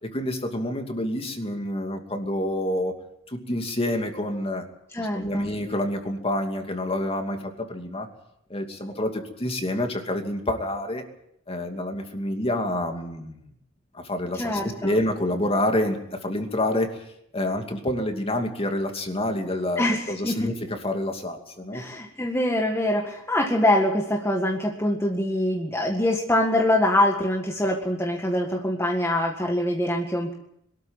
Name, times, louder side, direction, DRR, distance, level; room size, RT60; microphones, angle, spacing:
voice 1, 0.0-2.9 3.3-4.6 5.0-8.1 8.5-11.0 11.5-13.4 13.9-17.0 17.3-20.5 20.8-21.8, left 1 dB, 30° left, 4 dB, 2.6 m, -28 dB
voice 2, 4.9-5.5 14.4-15.0 19.8-20.5 21.7-30.3, left 1 dB, 15° left, 0 dB, 1.9 m, -24 dB
23.0 x 13.0 x 9.1 m, 0.76 s
head